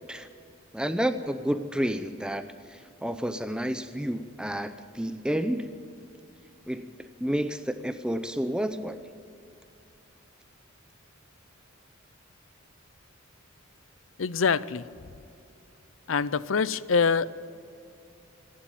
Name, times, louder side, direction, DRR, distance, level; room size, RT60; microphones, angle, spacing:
voice 1, 0.7-5.7 6.7-9.0, equal, 5° right, 10 dB, 0.6 m, -30 dB
voice 2, 14.2-14.9 16.1-17.3, left 5 dB, 65° left, 18 dB, 0.6 m, -25 dB
25.0 x 11.5 x 9.1 m, 2.6 s
head